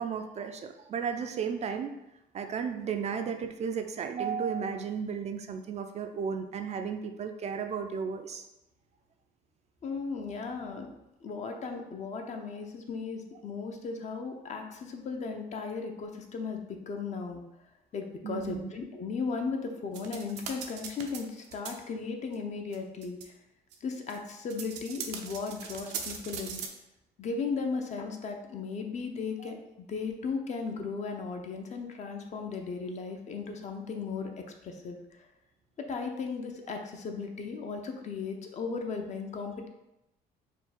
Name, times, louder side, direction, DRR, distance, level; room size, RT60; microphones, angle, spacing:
voice 1, 0.0-1.9 2.3-8.5 18.2-18.7 29.4-29.5, right 6 dB, 40° right, 6 dB, 0.4 m, -34 dB
voice 2, 9.8-10.9 11.2-17.4 17.9-23.3 23.8-26.6 27.2-34.3 34.6-35.0 35.9-39.7, left 4 dB, 45° left, 4 dB, 0.6 m, -36 dB
sound 1, 19.9-21.2 21.4-21.7 22.3-22.4 22.7-22.8 23.0-23.2 23.7-26.7, right 7 dB, 85° right, 0.6 m, -39 dB
4.5 x 2.2 x 4.1 m, 0.89 s
cardioid pair, 110°, 17 cm